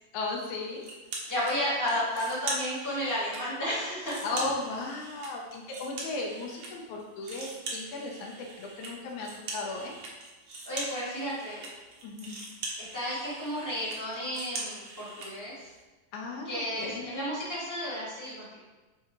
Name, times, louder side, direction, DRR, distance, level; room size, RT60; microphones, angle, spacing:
voice 1, 0.1-0.9 4.2-9.9 12.0-12.4 16.1-17.0, left 3 dB, 75° left, 0 dB, 1.8 m, -36 dB
sound 1, 0.8-1.5 1.9-3.4 3.8-6.7 7.0-15.3, right 2 dB, 85° right, 1.1 m, -41 dB
voice 2, 1.3-4.2 10.6-11.6 12.8-15.7 16.4-18.6, equal, 15° left, -9 dB, 0.7 m, -32 dB
8.6 x 3.9 x 2.9 m, 1.2 s
omnidirectional pair, 4.1 m